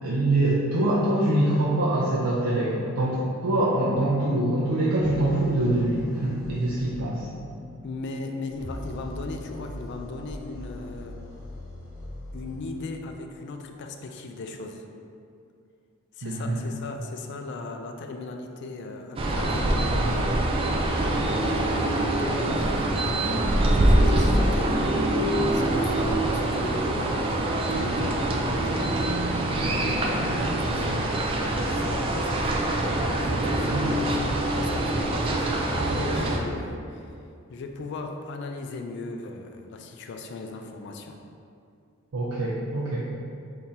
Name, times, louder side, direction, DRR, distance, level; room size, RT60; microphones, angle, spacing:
voice 1, 0.0-7.2 16.2-16.7 33.4-33.9 42.1-43.0, right 1 dB, 85° right, -6 dB, 0.5 m, -24 dB
sound 1, 4.2-13.7, left 6 dB, 80° left, 1.0 m, -44 dB
sound 2, 5.0-7.0 8.5-12.8, equal, 35° left, 1.5 m, -41 dB
voice 2, 7.8-11.2 12.3-14.8 16.1-20.5 20.9-25.0 25.5-27.4 27.7-29.0 29.5-32.5 33.1-37.1 37.5-41.2, left 3 dB, 55° left, 4 dB, 0.3 m, -37 dB
sound 3, 19.2-36.4, right 1 dB, 25° right, 0.3 m, -24 dB
3.6 x 2.8 x 4.2 m, 2.4 s
head